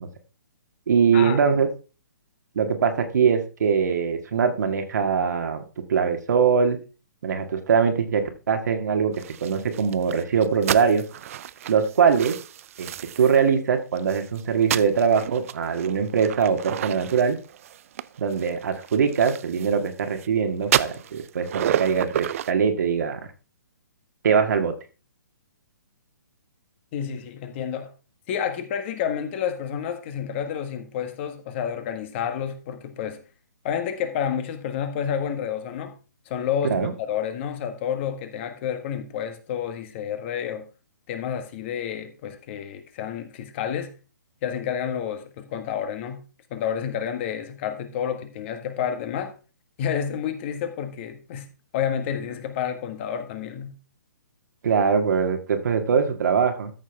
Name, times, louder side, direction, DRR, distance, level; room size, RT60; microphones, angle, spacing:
voice 1, 0.9-1.7 2.6-5.6 5.9-6.8 7.2-9.1 9.4-11.0 11.7-12.4 12.8-12.9 13.2-17.4 18.2-23.2 24.2-24.7 36.7-36.9 54.6-56.7, right 6 dB, 60° right, 2.0 m, -22 dB
sound 1, 9.1-13.5 14.0-20.3 20.6-22.5, right 11 dB, 45° right, 0.4 m, -31 dB
voice 2, 26.9-27.9 28.3-33.2 33.6-36.0 36.2-40.7 41.1-43.9 44.4-46.2 46.5-49.3 49.8-53.8, left 8 dB, 35° left, 1.6 m, -30 dB
13.5 x 6.5 x 3.5 m
hypercardioid pair, 140°, 10 cm